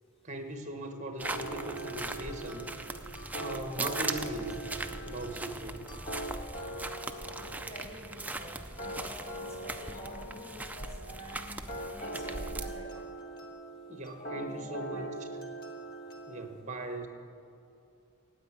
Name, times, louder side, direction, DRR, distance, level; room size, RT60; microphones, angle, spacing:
voice 1, 0.2-2.8 3.4-4.5 5.0-5.9 13.9-15.1 16.3-17.1, right 2 dB, 35° right, 5 dB, 1.1 m, -39 dB
sound 1, 1.2-16.5, right 1 dB, 40° left, 1.3 m, -42 dB
sound 2, 1.2-12.8, right 2 dB, 5° right, 0.3 m, -40 dB
voice 2, 7.3-11.7 11.9-13.2 14.2-15.1, equal, 25° left, -1 dB, 1.8 m, -49 dB
9.3 x 8.4 x 8.9 m, 2.7 s
head